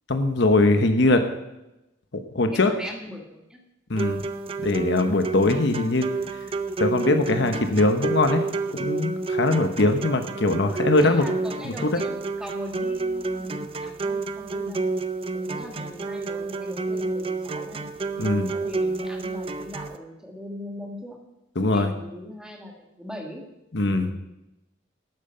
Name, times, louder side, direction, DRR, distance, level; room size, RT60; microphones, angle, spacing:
voice 1, 0.1-1.2 2.1-2.7 3.9-4.2 4.6-6.1 6.8-8.4 8.7-11.2 11.6-12.0 18.2-18.5 21.6-21.9 23.7-24.1, left 2 dB, 65° left, 7 dB, 1.0 m, -21 dB
voice 2, 2.5-3.6 11.0-14.8 15.3-17.9 18.3-21.2 21.6-23.4 23.9-24.1, left 1 dB, 5° right, 1 dB, 1.7 m, -40 dB
sound 1, 4.0-20.0, right 3 dB, 30° right, 0.5 m, -30 dB
12.5 x 8.9 x 5.6 m, 0.93 s
head